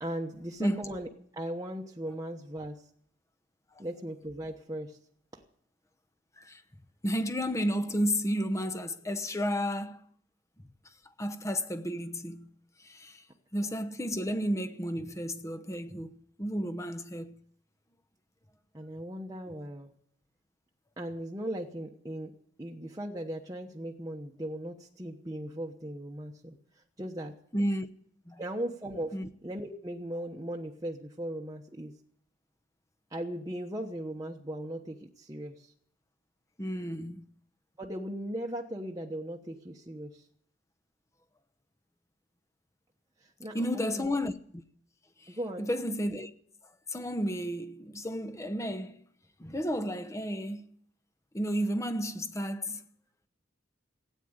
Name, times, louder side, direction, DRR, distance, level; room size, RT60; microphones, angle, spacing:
voice 1, 0.0-2.8 3.8-5.0 5.3-5.4 18.7-19.9 21.0-26.6 27.0-27.4 28.4-31.9 33.1-35.7 37.8-40.2 43.2-44.1 45.3-45.7, right 1 dB, 20° right, 1.1 m, -38 dB
voice 2, 7.0-10.0 11.2-12.5 12.8-13.2 13.5-17.4 27.5-27.9 28.3-28.4 29.1-29.3 36.6-37.2 43.5-44.6 45.6-46.3 46.9-49.0 49.4-50.7 51.3-52.8, equal, 15° left, 0.9 m, -32 dB
17.0 x 9.2 x 8.8 m
head